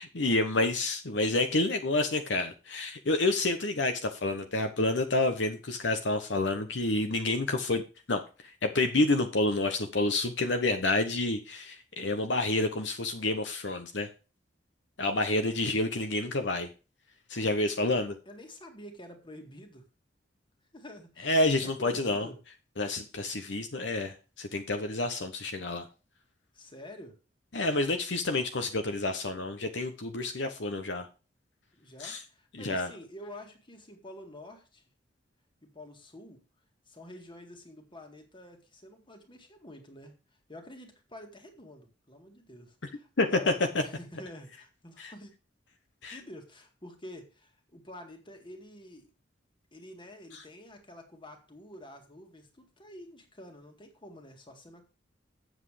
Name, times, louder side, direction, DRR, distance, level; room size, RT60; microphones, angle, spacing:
voice 1, 0.1-7.8 8.1-8.2 8.6-14.1 15.0-16.7 17.3-18.2 21.2-22.3 22.8-25.9 27.5-31.1 32.0-32.2 32.5-32.9 43.2-43.5 45.0-45.1 46.0-46.2 50.3-50.4, left 2 dB, 70° left, 7 dB, 1.0 m, -29 dB
voice 2, 18.3-19.8 20.7-21.3 21.8-22.4 26.5-27.2 31.7-34.8 35.6-36.4 36.9-40.1 40.5-45.3 46.1-49.1 49.7-54.8, left 1 dB, 25° left, 4 dB, 1.9 m, -48 dB
8.1 x 7.5 x 5.0 m, 0.33 s
head